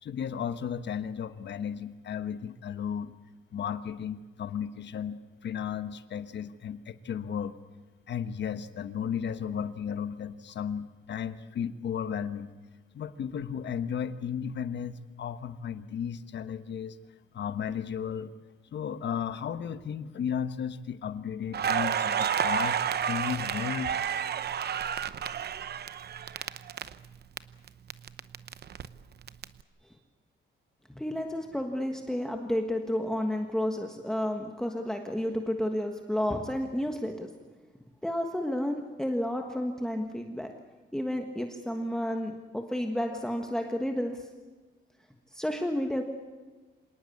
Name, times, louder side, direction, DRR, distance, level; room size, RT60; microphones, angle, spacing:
voice 1, 0.0-3.2 3.5-7.5 8.1-12.5 12.9-17.0 17.3-18.3 18.7-23.9, left 8 dB, 60° left, 11 dB, 1.2 m, -34 dB
Crackle, 21.5-27.4 27.7-29.4, right 8 dB, 55° right, 0.8 m, -30 dB
voice 2, 30.9-37.3 38.0-40.5 40.9-44.1 45.3-46.0, left 1 dB, 5° left, 3 dB, 1.4 m, -31 dB
26.5 x 19.0 x 8.5 m, 1.3 s
wide cardioid pair, 150°, 21 cm